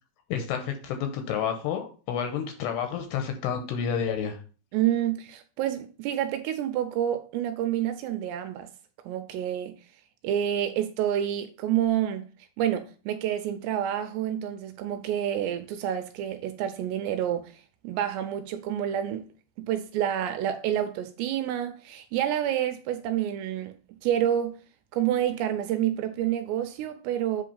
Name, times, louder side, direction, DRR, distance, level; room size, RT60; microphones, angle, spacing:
voice 1, 0.3-4.4, left 7 dB, 75° left, 2.7 m, -30 dB
voice 2, 4.7-8.7 9.1-9.8 10.2-12.3 12.6-19.3 19.6-23.7 24.0-24.6 24.9-27.4, right 11 dB, 85° right, 2.6 m, -28 dB
7.8 x 3.7 x 5.4 m
omnidirectional pair, 5.3 m